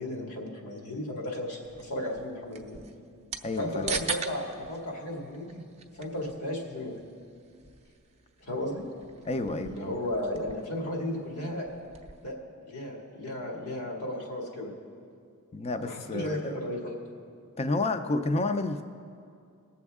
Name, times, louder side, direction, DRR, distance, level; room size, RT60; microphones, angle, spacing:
voice 1, 0.0-2.8 3.6-5.6 6.0-6.9 8.4-8.8 9.6-11.7 12.2-12.4 12.7-14.7 15.8-16.9, left 1 dB, 80° left, -1 dB, 2.1 m, -34 dB
sound 1, 1.6-12.3, right 5 dB, 30° right, 0.5 m, -42 dB
voice 2, 3.4-3.9 9.3-9.8 15.5-16.6 17.6-18.8, left 2 dB, 30° left, 9 dB, 0.5 m, -30 dB
21.0 x 7.1 x 3.6 m, 2.4 s
head